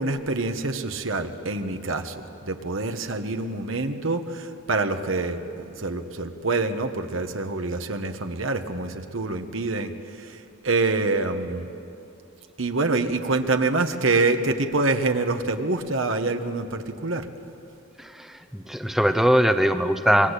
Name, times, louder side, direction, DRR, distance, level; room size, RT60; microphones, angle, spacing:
voice 1, 0.0-9.9 10.2-10.4 10.6-11.7 12.6-17.3, right 3 dB, 70° right, 7 dB, 1.5 m, -26 dB
voice 2, 18.0-20.3, equal, ahead, 7 dB, 0.8 m, -21 dB
26.5 x 23.0 x 8.4 m, 2.8 s
head